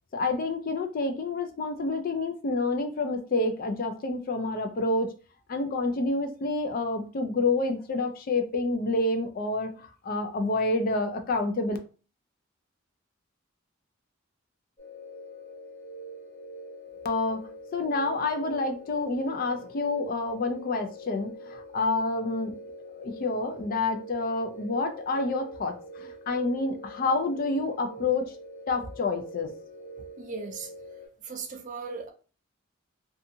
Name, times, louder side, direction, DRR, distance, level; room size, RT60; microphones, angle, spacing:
voice 1, 0.1-5.1 5.5-11.8 17.0-22.5 23.0-28.3 28.7-29.5, left 3 dB, 45° left, 0.4 m, -28 dB
sound 1, 14.8-31.1, equal, 25° left, 1.2 m, -44 dB
voice 2, 30.2-30.7 31.2-32.1, right 4 dB, 40° right, 0.4 m, -37 dB
2.7 x 2.3 x 2.6 m
head